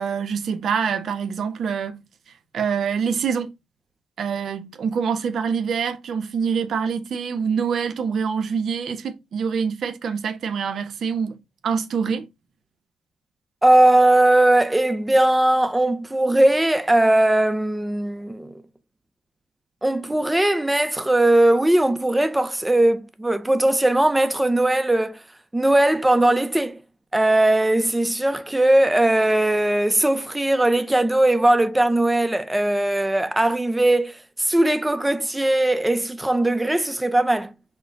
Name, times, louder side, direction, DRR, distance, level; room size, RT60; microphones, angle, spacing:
voice 1, 0.0-2.0 2.5-3.5 4.2-11.4 11.6-12.3, right 6 dB, 60° right, 0.9 m, -25 dB
voice 2, 13.6-18.5 19.8-25.2 25.5-26.8 27.1-37.5, right 1 dB, 10° right, 0.6 m, -19 dB
5.7 x 2.3 x 3.8 m
cardioid pair, 90°, 0 cm